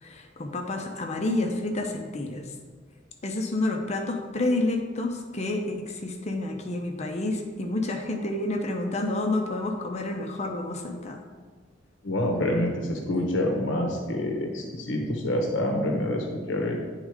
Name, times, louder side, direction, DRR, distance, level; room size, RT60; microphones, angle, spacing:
voice 1, 0.0-2.5 3.2-11.2, left 2 dB, 35° left, 3 dB, 0.6 m, -29 dB
voice 2, 12.0-16.8, left 1 dB, 70° left, 2 dB, 0.8 m, -27 dB
9.6 x 3.7 x 4.9 m, 1.5 s
head